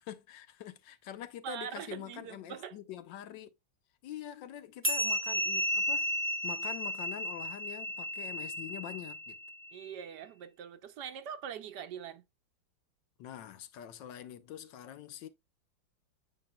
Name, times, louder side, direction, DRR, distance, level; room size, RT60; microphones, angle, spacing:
voice 1, 0.0-3.5 4.0-6.1 6.4-9.4 13.2-15.3, left 11 dB, 75° left, 1.4 m, -45 dB
voice 2, 1.4-2.8 9.7-12.2, right 8 dB, 70° right, 1.2 m, -42 dB
sound 1, 4.8-9.7, equal, 10° right, 0.9 m, -33 dB
8.8 x 5.6 x 2.2 m
omnidirectional pair, 2.0 m